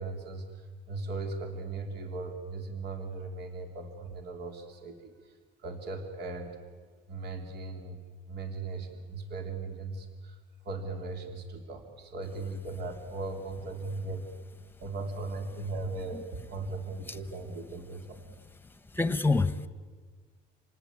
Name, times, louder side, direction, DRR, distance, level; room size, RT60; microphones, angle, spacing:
voice 1, 0.0-5.3 5.6-6.6 7.1-8.0 8.3-10.4 10.6-14.3 14.8-18.3, right 3 dB, 55° right, 4 dB, 3.6 m, -38 dB
voice 2, 18.6-19.7, left 3 dB, 10° left, 13 dB, 1.4 m, -28 dB
27.5 x 19.0 x 8.6 m, 1.5 s
cardioid pair, 115°, 20 cm